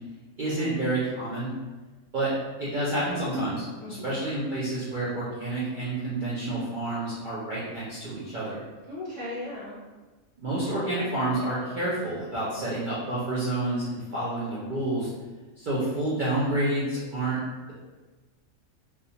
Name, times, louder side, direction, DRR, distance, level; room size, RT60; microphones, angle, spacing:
voice 1, 0.4-1.5 2.1-2.3 2.6-8.6 10.4-15.1 15.6-17.4, right 2 dB, 55° right, -9 dB, 0.5 m, -29 dB
voice 2, 3.8-4.2 8.9-9.8, left 2 dB, 35° left, -10 dB, 0.5 m, -37 dB
2.4 x 2.2 x 2.7 m, 1.2 s
omnidirectional pair, 1.5 m